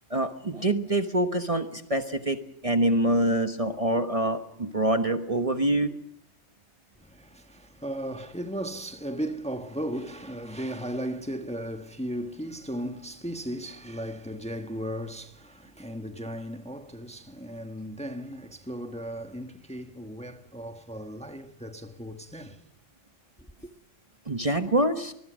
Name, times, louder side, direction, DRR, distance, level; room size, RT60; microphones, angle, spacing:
voice 1, 0.1-2.4 2.6-5.9 24.3-25.1, right 1 dB, 30° right, 1.2 m, -25 dB
voice 2, 7.0-22.6, equal, 5° left, 1.2 m, -36 dB
25.0 x 21.0 x 6.3 m
omnidirectional pair, 1.3 m